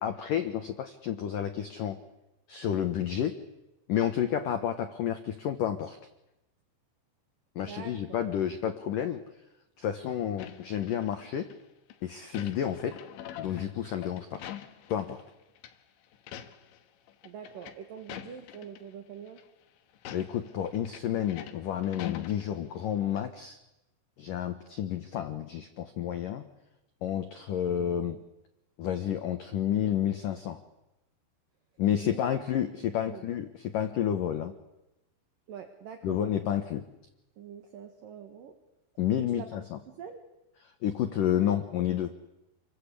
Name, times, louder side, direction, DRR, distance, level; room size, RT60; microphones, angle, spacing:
voice 1, 0.0-2.0 2.5-3.3 3.9-6.0 7.6-9.2 9.8-11.5 12.0-13.0 13.4-14.4 14.9-15.2 20.1-23.6 24.2-26.4 27.0-28.2 28.8-30.6 31.8-34.5 36.0-36.8 39.0-39.8 40.8-42.1, left 10 dB, 85° left, 8 dB, 1.8 m, -30 dB
voice 2, 7.6-8.2 17.2-19.4 32.0-33.3 35.5-36.2 37.4-38.5 39.2-39.5 39.9-40.2, right 8 dB, 55° right, 6 dB, 2.7 m, -45 dB
sound 1, 10.4-11.5 11.9-15.3 15.6-15.7 16.1-16.8 17.1-18.8 19.3-19.4 19.9-22.9 23.2-23.3, left 11 dB, 70° left, 3.6 m, -44 dB
28.5 x 22.0 x 8.5 m, 0.94 s
omnidirectional pair, 5.9 m